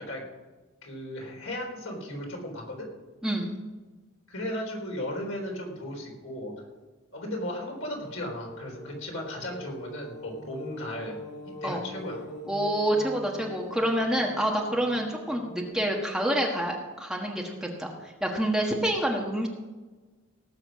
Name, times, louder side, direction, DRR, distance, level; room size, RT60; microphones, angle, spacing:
voice 1, 0.8-2.9 4.3-6.5 7.1-11.2 11.6-12.2, left 1 dB, 70° left, 0 dB, 4.3 m, -36 dB
sound 1, 7.8-15.7, left 1 dB, 55° left, 2.7 m, -43 dB
voice 2, 12.5-17.9 18.2-19.5, right 1 dB, 5° right, -1 dB, 1.4 m, -27 dB
18.0 x 7.6 x 6.3 m, 1.3 s
head